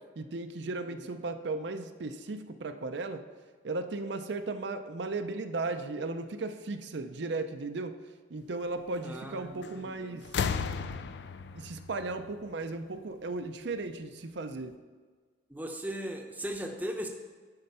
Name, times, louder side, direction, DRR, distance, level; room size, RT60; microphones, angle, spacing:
voice 1, 0.2-3.2 3.6-8.0 8.3-10.3 11.5-14.8, right 3 dB, 65° right, 8 dB, 0.6 m, -36 dB
voice 2, 9.0-10.2 15.5-17.1, right 1 dB, 10° right, 3 dB, 0.7 m, -38 dB
sound 1, 9.6-9.9 10.2-13.0 14.1-14.2, left 6 dB, 65° left, 0.4 m, -35 dB
10.5 x 4.5 x 5.5 m, 1.5 s
head